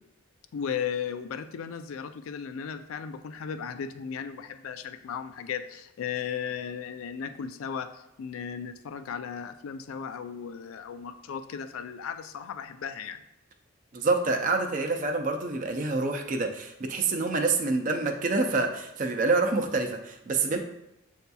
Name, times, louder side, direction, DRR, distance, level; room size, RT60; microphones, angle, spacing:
voice 1, 0.5-13.2, left 7 dB, 80° left, 9 dB, 0.3 m, -36 dB
voice 2, 13.9-20.6, right 3 dB, 40° right, 4 dB, 0.4 m, -27 dB
7.8 x 2.7 x 2.2 m, 0.85 s
head